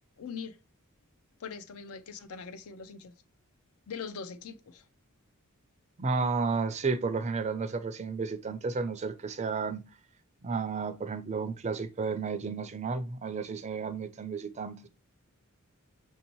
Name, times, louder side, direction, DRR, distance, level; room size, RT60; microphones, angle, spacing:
voice 1, 0.2-0.6 1.4-3.1 3.9-4.8, left 5 dB, 70° left, 0.5 m, -41 dB
voice 2, 6.0-9.8 10.4-14.9, right 4 dB, 30° right, 0.4 m, -32 dB
6.0 x 2.7 x 2.9 m
head